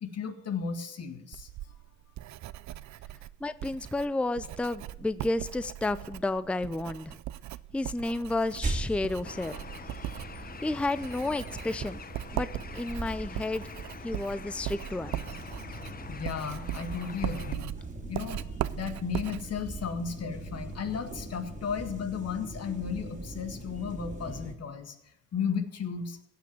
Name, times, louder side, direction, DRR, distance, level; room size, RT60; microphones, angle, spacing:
voice 1, 0.0-1.5 9.9-10.2 16.1-17.8 18.1-25.0 25.3-26.2, left 6 dB, 55° left, 8 dB, 1.8 m, -34 dB
Writing, 1.3-20.9, right 14 dB, 65° right, 0.5 m, -40 dB
voice 2, 3.4-7.2 7.7-9.5 10.6-12.0 12.3-13.7 14.0-15.2, left 2 dB, 5° left, 14 dB, 0.5 m, -31 dB
sound 1, 8.6-24.5, right 2 dB, 25° right, 2.2 m, -41 dB
Bird, 9.2-17.5, left 5 dB, 30° left, 0.9 m, -46 dB
16.0 x 6.0 x 9.3 m, 0.82 s
cardioid pair, 90°, 30 cm